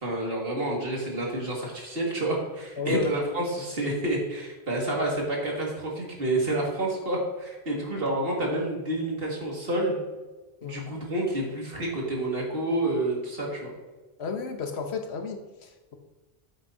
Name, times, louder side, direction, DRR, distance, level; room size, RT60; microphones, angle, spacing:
voice 1, 0.0-10.0 10.6-13.7, right 1 dB, 65° right, -2 dB, 2.3 m, -29 dB
voice 2, 14.2-15.9, left 5 dB, 90° left, 5 dB, 1.3 m, -32 dB
9.0 x 8.1 x 2.8 m, 1.2 s
omnidirectional pair, 1.0 m